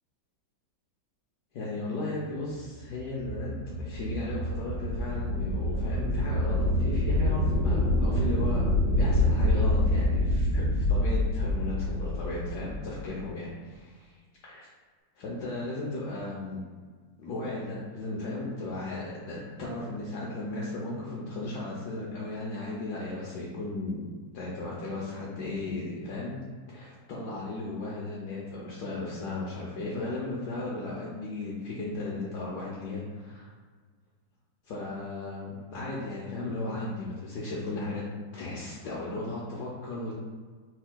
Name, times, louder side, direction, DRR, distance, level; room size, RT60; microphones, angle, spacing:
voice 1, 1.5-3.5 3.8-8.6 8.9-14.1 14.4-14.7 15.2-16.6 17.2-24.1 24.3-26.4 26.7-33.5 34.7-38.0 38.3-40.1, left 2 dB, 70° left, -5 dB, 1.2 m, -35 dB
sound 1, 3.0-13.0, left 1 dB, 75° right, 1.4 m, -26 dB
4.4 x 4.3 x 2.2 m, 1.6 s
omnidirectional pair, 2.0 m